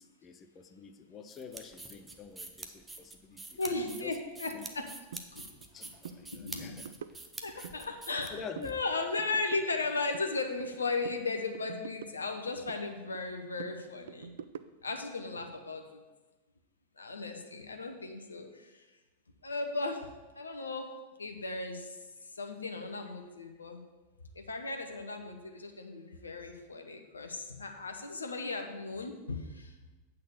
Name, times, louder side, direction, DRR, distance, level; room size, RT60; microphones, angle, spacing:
voice 1, 0.0-3.6 3.8-4.2 4.5-4.6 5.7-6.9 7.5-7.7 8.3-8.8, left 5 dB, 25° left, 7 dB, 0.6 m, -47 dB
sound 1, 1.3-8.7, right 2 dB, 10° right, 0.8 m, -46 dB
voice 2, 3.6-4.8 5.3-5.5 6.1-6.8 7.4-14.3 14.8-16.0 17.0-18.8 19.4-20.1 20.3-20.9 21.2-23.8 24.3-29.7, left 3 dB, 75° left, 4 dB, 1.0 m, -36 dB
sound 2, 5.1-5.3 5.6-5.8 6.0-6.2 6.5-7.8 8.1-8.8 9.0-10.8 11.0-12.8 13.1-15.0, right 7 dB, 65° right, 0.3 m, -46 dB
8.3 x 4.1 x 7.0 m, 1.2 s
figure-of-eight pair, 90°, 0 cm